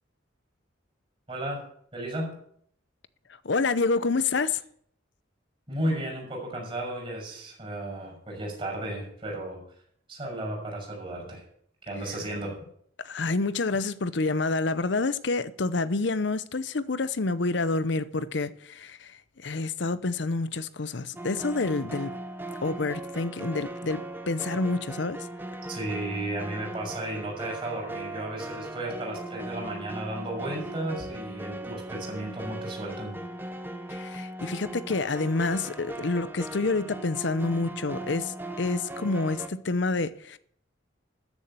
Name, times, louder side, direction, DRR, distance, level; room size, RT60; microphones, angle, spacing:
voice 1, 1.3-1.6 1.9-2.4 5.7-9.6 10.1-11.4 11.8-12.6 25.7-33.1, right 1 dB, 30° right, 6.4 m, -34 dB
voice 2, 3.4-4.6 13.0-22.2 22.6-25.3 33.9-40.4, left 3 dB, 65° left, 0.7 m, -28 dB
sound 1, 21.2-39.5, right 1 dB, 10° right, 0.9 m, -38 dB
13.5 x 7.2 x 8.2 m
head